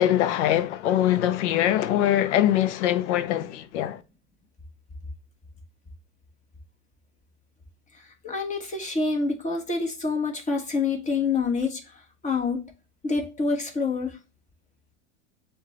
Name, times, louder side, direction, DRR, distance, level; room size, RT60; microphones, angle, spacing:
voice 1, 0.0-4.0, left 12 dB, 65° left, 0.7 m, -23 dB
voice 2, 8.0-12.7 13.0-14.2, left 4 dB, 20° left, 1.4 m, -27 dB
7.1 x 2.4 x 2.9 m
hypercardioid pair, 90°, 38 cm